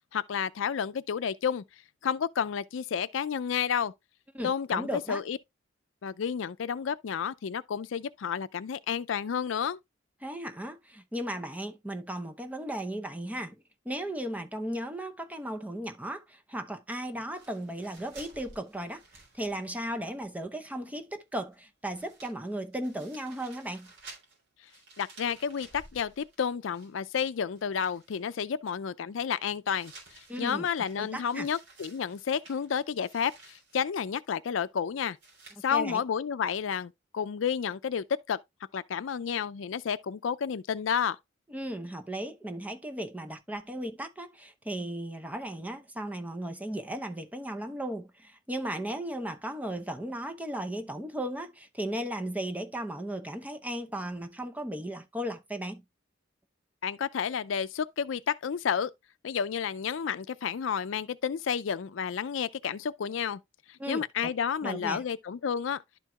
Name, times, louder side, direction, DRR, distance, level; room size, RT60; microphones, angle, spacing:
voice 1, 0.1-1.6 2.0-3.9 4.4-5.4 6.0-9.8 25.0-29.9 30.4-35.2 35.6-38.4 38.7-41.2 56.8-58.9 59.2-63.4 63.7-65.8, left 7 dB, 85° left, 0.4 m, -31 dB
voice 2, 4.3-5.2 10.2-13.6 13.8-23.9 30.3-30.7 31.0-31.5 35.7-36.0 41.5-55.8 63.8-64.3 64.6-65.0, right 1 dB, 10° right, 0.7 m, -36 dB
sound 1, 17.3-19.9 20.2-20.3 21.5-21.6 21.8-27.2 27.5-28.2 29.8-33.9 35.2-35.7, right 2 dB, 75° right, 3.5 m, -54 dB
11.5 x 4.6 x 2.3 m
head